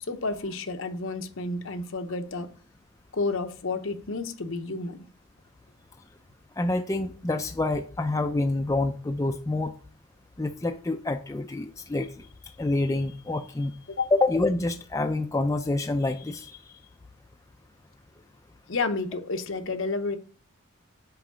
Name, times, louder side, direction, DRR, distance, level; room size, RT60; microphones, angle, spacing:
voice 1, 0.0-2.5 3.1-5.1 13.9-14.1 18.7-20.2, left 3 dB, 60° left, 0.8 m, -30 dB
voice 2, 6.6-9.7 10.4-12.1 12.6-13.7 14.1-16.6, left 2 dB, 15° left, 0.4 m, -27 dB
5.8 x 4.6 x 6.2 m
head